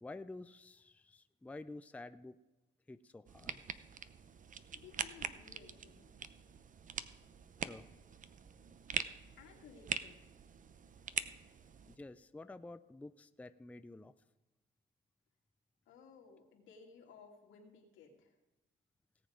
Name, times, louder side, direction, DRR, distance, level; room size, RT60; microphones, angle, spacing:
voice 1, 0.0-2.4 2.9-3.7 7.6-7.9 11.9-14.1, left 2 dB, 5° left, 11 dB, 0.4 m, -50 dB
sound 1, 3.3-12.0, right 6 dB, 40° right, 0.7 m, -44 dB
voice 2, 4.7-6.2 9.4-10.2 15.9-18.4, left 5 dB, 85° left, 0 dB, 2.5 m, -58 dB
17.5 x 7.2 x 5.1 m, 1.1 s
cardioid pair, 90°, 20 cm